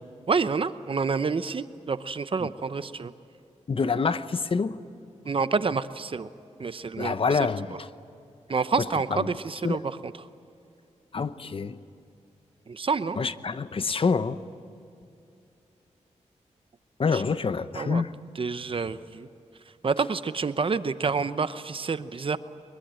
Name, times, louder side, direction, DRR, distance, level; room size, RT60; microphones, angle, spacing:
voice 1, 0.3-3.1 5.3-6.3 6.6-7.1 8.5-9.8 12.7-13.2 17.1-17.2 17.8-18.0 18.4-19.3 19.8-22.4, right 4 dB, 45° right, 0.9 m, -28 dB
voice 2, 3.7-4.8 7.0-7.9 8.8-9.3 9.6-9.8 11.1-11.8 13.1-14.4 17.0-18.1, left 5 dB, 50° left, 0.8 m, -27 dB
23.0 x 22.0 x 8.9 m
wide cardioid pair, 85°, 12 cm